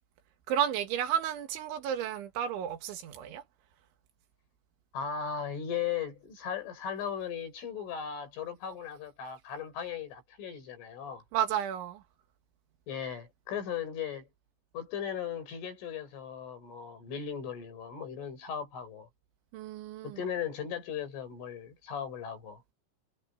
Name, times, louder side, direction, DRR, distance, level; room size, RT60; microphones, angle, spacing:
voice 1, 0.5-3.4 11.3-12.0 19.5-20.2, right 10 dB, 75° right, 4.1 m, -32 dB
voice 2, 4.9-11.2 12.9-14.3 14.7-19.1 20.0-22.6, left 8 dB, 85° left, 8.7 m, -37 dB
omnidirectional pair, 5.5 m